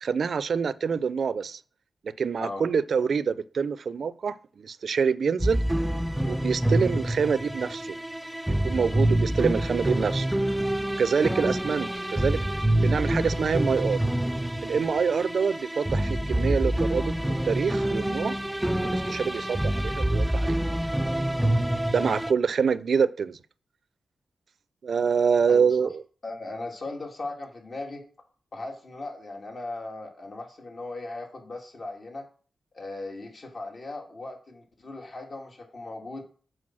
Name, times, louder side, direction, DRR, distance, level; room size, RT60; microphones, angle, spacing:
voice 1, 0.0-1.6 2.0-5.6 6.2-7.9 8.5-10.3 11.0-12.4 12.8-14.0 14.6-18.3 18.8-20.6 21.9-23.4 24.8-26.0, right 6 dB, 70° right, 0.5 m, -26 dB
sound 1, 5.4-22.3, right 1 dB, 10° right, 0.5 m, -26 dB
voice 2, 25.5-25.9 26.2-28.0 28.5-32.3 32.7-36.2, left 2 dB, 55° left, 2.8 m, -38 dB
7.7 x 4.6 x 6.2 m
cardioid pair, 60°, 0 cm